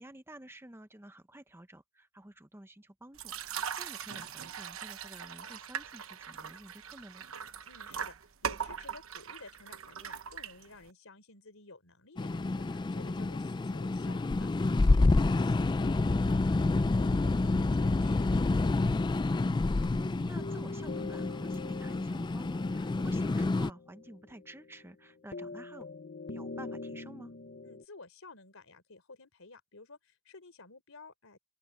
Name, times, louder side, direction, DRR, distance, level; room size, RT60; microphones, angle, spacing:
voice 1, 0.0-7.2 15.1-15.4 18.8-19.0 20.3-25.9 26.3-27.3, right 1 dB, 10° right, 0.8 m, -51 dB
sound 1, 3.1-10.9, right 7 dB, 90° right, 1.0 m, -40 dB
voice 2, 7.7-8.1 8.4-19.4 27.6-31.4, left 3 dB, 85° left, 3.6 m, -53 dB
sound 2, 12.2-23.7, left 2 dB, 20° left, 0.3 m, -28 dB
sound 3, 19.8-27.8, left 3 dB, 55° left, 0.8 m, -44 dB
open air
head